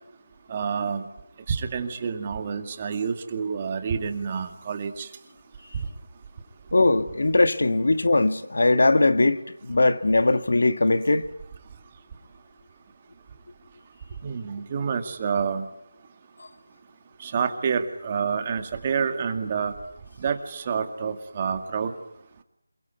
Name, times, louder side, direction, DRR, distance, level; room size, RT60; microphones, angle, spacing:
voice 1, 0.5-1.0 1.5-5.1 14.2-15.7 17.2-19.7 20.2-21.9, right 6 dB, 25° right, 2.1 m, -28 dB
voice 2, 6.7-11.3, left 2 dB, 70° left, 1.8 m, -20 dB
27.5 x 22.5 x 9.3 m
figure-of-eight pair, 170°, 0 cm